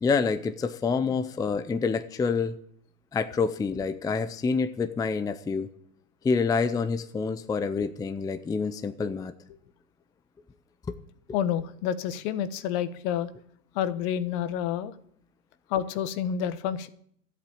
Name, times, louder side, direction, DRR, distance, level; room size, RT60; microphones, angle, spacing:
voice 1, 0.0-2.6 3.1-5.7 6.2-9.3 10.9-11.0, left 5 dB, 10° left, 10 dB, 0.6 m, -27 dB
voice 2, 11.3-13.3 13.7-14.9 15.7-16.9, left 9 dB, 55° left, 14 dB, 1.3 m, -29 dB
13.0 x 8.3 x 8.7 m, 0.65 s
hypercardioid pair, 115°, 40 cm